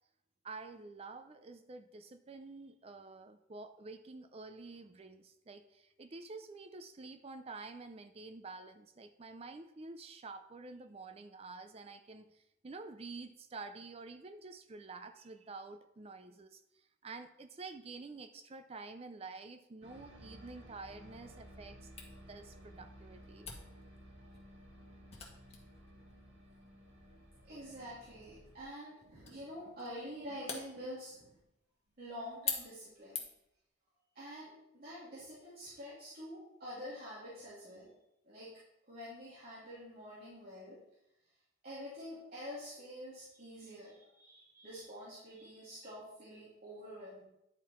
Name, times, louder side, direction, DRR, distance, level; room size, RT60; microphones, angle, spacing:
voice 1, 0.4-21.9 22.3-23.5, right 3 dB, 30° right, 9 dB, 0.4 m, -49 dB
sound 1, 19.8-28.6, equal, 65° right, 1.7 m, -56 dB
Camera, 22.0-33.6, left 6 dB, 35° left, 1.5 m, -47 dB
voice 2, 27.4-31.4 32.0-33.2 34.1-37.9 38.2-38.6 38.9-40.8 41.6-47.2, equal, 50° right, -9 dB, 2.9 m, -47 dB
10.5 x 5.5 x 4.4 m, 0.85 s
head